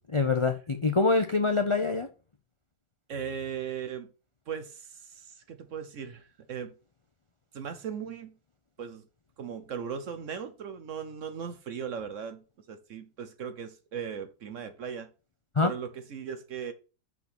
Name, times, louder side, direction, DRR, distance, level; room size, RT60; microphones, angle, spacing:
voice 1, 0.1-2.1 15.6-15.7, left 3 dB, 55° left, 0.3 m, -25 dB
voice 2, 3.1-4.1 4.5-6.7 7.5-8.4 8.8-9.0 9.4-15.1 15.6-16.7, right 7 dB, 55° right, 1.0 m, -38 dB
6.1 x 5.9 x 5.9 m
omnidirectional pair, 1.8 m